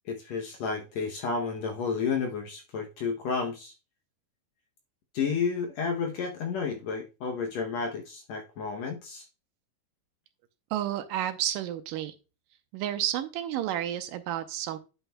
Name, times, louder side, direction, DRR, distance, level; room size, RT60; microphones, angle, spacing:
voice 1, 0.1-3.7 5.1-9.3, left 5 dB, 70° left, 2 dB, 1.8 m, -31 dB
voice 2, 10.7-12.1 12.7-14.8, right 11 dB, 85° right, 9 dB, 2.3 m, -31 dB
9.5 x 7.9 x 2.3 m, 0.30 s
omnidirectional pair, 3.9 m